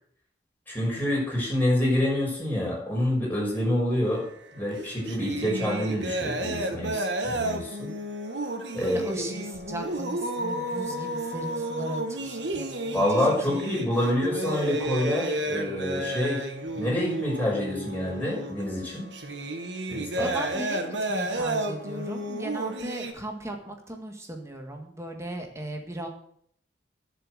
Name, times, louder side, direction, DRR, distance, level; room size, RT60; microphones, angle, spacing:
voice 1, 0.7-4.2 4.5-7.9 8.7-9.0 12.9-16.4 16.7-19.1 19.9-20.3, left 1 dB, 10° left, -4 dB, 6.4 m, -27 dB
sound 1, 4.1-4.3 4.6-23.1, right 1 dB, 85° right, 1.6 m, -32 dB
voice 2, 8.8-13.6 14.0-14.3 20.2-26.1, right 1 dB, 15° right, 3 dB, 1.8 m, -37 dB
11.0 x 7.5 x 7.9 m, 0.64 s
head